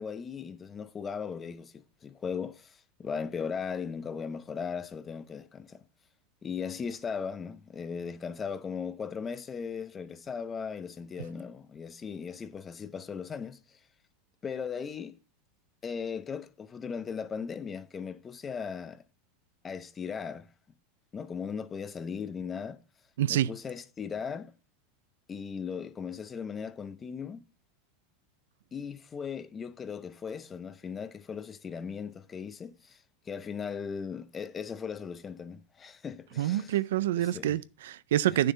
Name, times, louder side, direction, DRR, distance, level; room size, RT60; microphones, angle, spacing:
voice 1, 0.0-5.8 6.4-13.8 14.4-15.2 15.8-19.0 19.6-20.5 21.1-22.8 23.3-24.5 25.3-27.4 28.7-36.8 37.2-37.6 38.3-38.4, left 6 dB, 20° left, 0.6 m, -38 dB
voice 2, 23.2-23.5 36.4-38.5, right 12 dB, 85° right, 0.4 m, -27 dB
9.6 x 6.7 x 3.9 m
supercardioid pair, 145°, 0 cm